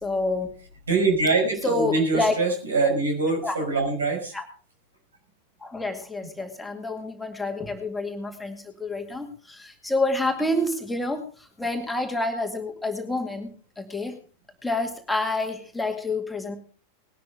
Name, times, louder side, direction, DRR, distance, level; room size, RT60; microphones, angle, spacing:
voice 1, 0.0-0.5 1.6-2.3 3.4-3.6 4.3-4.4 5.6-13.5 13.8-14.2 14.6-16.6, left 2 dB, 5° left, 3 dB, 2.1 m, -28 dB
voice 2, 0.9-4.3, right 3 dB, 70° right, 3 dB, 5.7 m, -23 dB
19.5 x 12.0 x 3.7 m, 0.39 s
figure-of-eight pair, 90°, 0 cm